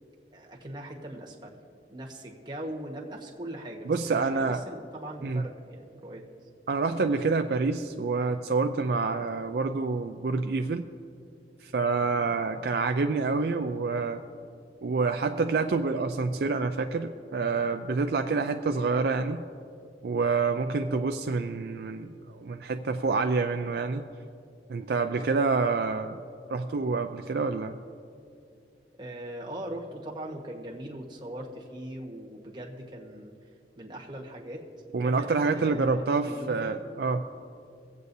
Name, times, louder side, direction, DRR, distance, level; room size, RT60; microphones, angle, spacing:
voice 1, 0.3-1.6 1.9-6.2 9.0-9.2 15.5-15.7 18.3-18.5 29.0-33.3 33.8-36.8, right 1 dB, 25° right, -2 dB, 1.4 m, -40 dB
voice 2, 3.9-4.6 5.2-5.4 6.7-10.8 11.6-14.2 14.8-19.4 20.0-24.0 24.7-26.2 26.5-27.8 34.9-37.2, right 4 dB, 60° right, 6 dB, 0.4 m, -27 dB
24.0 x 8.1 x 2.7 m, 2.4 s
head